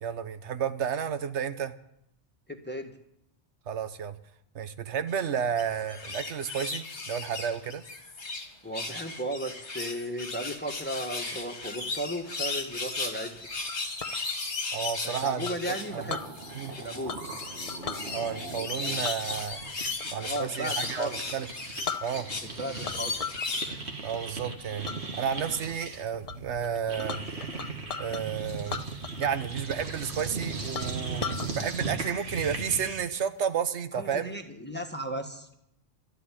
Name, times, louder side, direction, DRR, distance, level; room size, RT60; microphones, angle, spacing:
voice 1, 0.0-1.7 3.7-4.2 4.5-7.8 14.7-15.6 15.9-16.2 16.5-16.7 18.1-19.6 20.1-21.5 22.0-22.3 24.0-24.9 25.1-27.2 28.0-28.9 29.2-34.4, right 8 dB, 85° right, 11 dB, 1.1 m, -32 dB
voice 2, 2.5-3.0 8.6-13.3 15.0-16.2 16.8-17.2 20.2-21.2 22.4-23.2 33.9-35.5, equal, 10° left, 3 dB, 1.4 m, -35 dB
sound 1, 5.4-8.5 8.7-15.9 16.4-23.8 24.3-24.4, left 3 dB, 90° left, 2.2 m, -36 dB
Chink clink, 13.7-14.2 15.4-16.3 17.1-17.4 17.7-18.0 19.0-20.6 20.9-21.1 21.5-21.6 21.8-22.5 22.8-23.5 23.9-24.2 24.8-25.0 25.5-25.9 26.3-26.4 26.6-28.2 28.6-29.4 29.7-29.8 30.3-30.4 30.7-31.5, left 6 dB, 40° left, 0.6 m, -37 dB
sound 2, 15.3-15.4 15.6-21.8 22.1-33.2, right 3 dB, 70° right, 2.0 m, -38 dB
12.5 x 8.2 x 10.0 m, 0.77 s
omnidirectional pair, 1.1 m